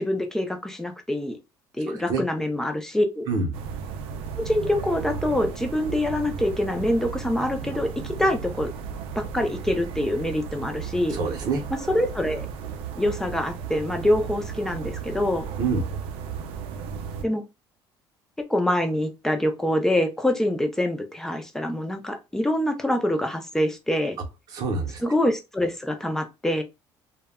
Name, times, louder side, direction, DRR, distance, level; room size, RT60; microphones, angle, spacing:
voice 1, 0.0-1.4 1.8-3.3 4.4-8.7 9.2-11.2 11.9-12.5 13.0-15.5 17.2-17.4 18.5-24.2 25.0-26.6, left 1 dB, 5° left, 0.3 m, -25 dB
voice 2, 1.9-2.2 3.3-3.5 11.1-11.6 15.6-15.8 24.5-25.1, right 4 dB, 45° right, 0.6 m, -26 dB
sound 1, 3.5-17.2, right 6 dB, 90° right, 0.4 m, -35 dB
2.2 x 2.0 x 3.4 m
cardioid pair, 175°, 9 cm